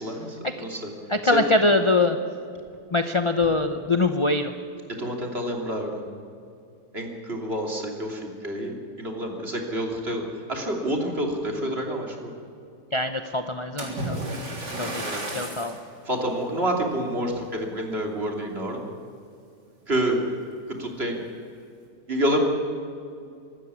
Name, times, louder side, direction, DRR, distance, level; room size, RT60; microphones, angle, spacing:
voice 1, 0.0-0.9 1.2-1.4 5.0-6.0 6.9-12.3 15.0-15.2 16.0-18.9 19.9-20.2 20.8-21.2 22.1-22.4, right 1 dB, 35° right, 1 dB, 3.2 m, -28 dB
voice 2, 1.1-2.2 2.9-4.5 12.9-14.2 14.8-15.8, left 2 dB, 30° left, 8 dB, 0.6 m, -23 dB
Splash splatter, 13.8-15.8 16.5-16.7 17.3-17.4, right 1 dB, 90° right, 4.3 m, -32 dB
24.5 x 13.0 x 9.7 m, 2.5 s
omnidirectional pair, 1.8 m